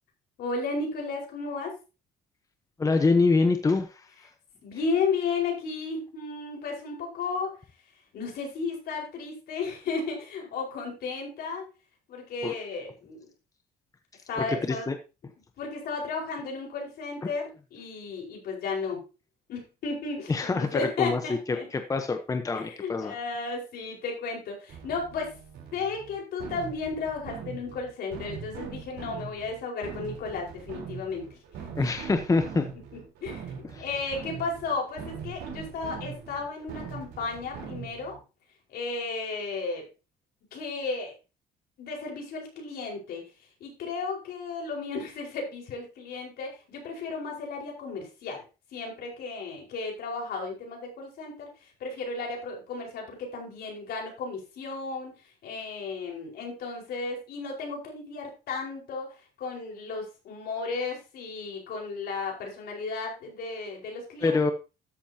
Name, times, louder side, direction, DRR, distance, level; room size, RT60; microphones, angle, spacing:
voice 1, 0.4-1.8 4.6-7.6 8.1-11.7 12.1-13.3 14.3-14.9 15.6-19.0 19.5-21.7 22.5-25.3 25.7-31.9 33.2-38.2 38.7-39.9 40.5-41.2 41.8-43.2 43.6-48.4 48.7-55.2 55.4-64.4, left 4 dB, 70° left, 0 dB, 4.9 m, -34 dB
voice 2, 2.8-4.1 12.4-12.5 14.4-14.9 20.3-23.1 31.8-32.7 33.7-33.9 64.2-64.5, left 3 dB, 20° left, 7 dB, 1.0 m, -25 dB
sound 1, 24.7-38.2, right 6 dB, 80° right, 3.9 m, -41 dB
13.0 x 8.3 x 2.9 m, 0.29 s
cardioid pair, 110°, 17 cm